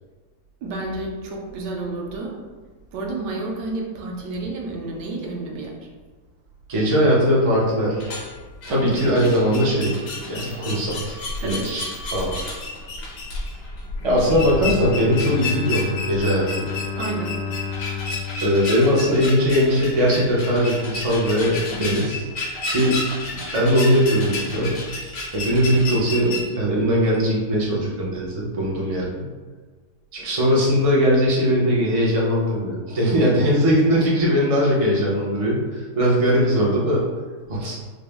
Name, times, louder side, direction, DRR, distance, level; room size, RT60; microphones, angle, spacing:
voice 1, 0.6-2.4 2.9-5.7 8.7-9.4 11.4-11.8 17.0-17.4 21.7-22.0, right 2 dB, 75° right, 0 dB, 1.3 m, -31 dB
voice 2, 6.7-8.1 8.7-12.4 14.0-16.7 18.4-22.2 22.7-23.0 23.5-24.8 25.3-29.3 30.1-37.1 37.5-37.8, equal, 45° right, -4 dB, 0.4 m, -20 dB
sound 1, 7.9-26.4, left 2 dB, 70° left, 1.4 m, -31 dB
Bowed string instrument, 14.0-19.9, left 7 dB, 90° left, 1.3 m, -32 dB
4.9 x 2.0 x 3.4 m, 1.4 s
omnidirectional pair, 1.9 m